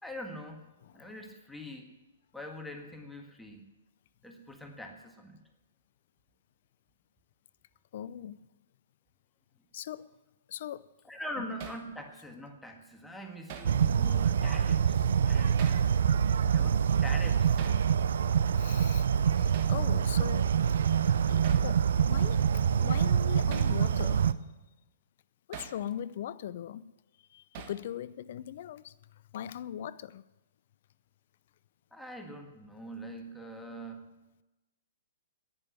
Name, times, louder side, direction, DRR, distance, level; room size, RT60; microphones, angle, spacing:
voice 1, 0.0-0.7 0.9-1.9 2.3-3.7 4.2-5.4 11.1-15.8 16.5-18.3 31.9-34.1, equal, 5° left, 1.7 m, -44 dB
voice 2, 0.8-1.1 7.9-8.5 9.7-10.1 10.5-10.9 11.4-11.5 18.6-19.1 19.3-20.5 21.3-22.4 22.7-24.3 25.5-26.9 27.3-28.9 29.3-30.2, left 10 dB, 55° left, 0.5 m, -40 dB
Hammer, 11.6-11.9 13.5-13.8 15.6-15.9 17.6-17.8 19.5-19.8 21.4-21.7 23.5-23.8 25.5-25.8 27.5-27.9, right 7 dB, 45° right, 1.4 m, -43 dB
sound 1, 13.6-24.3, right 8 dB, 65° right, 0.5 m, -26 dB
10.5 x 9.8 x 9.8 m
figure-of-eight pair, 115°, 0 cm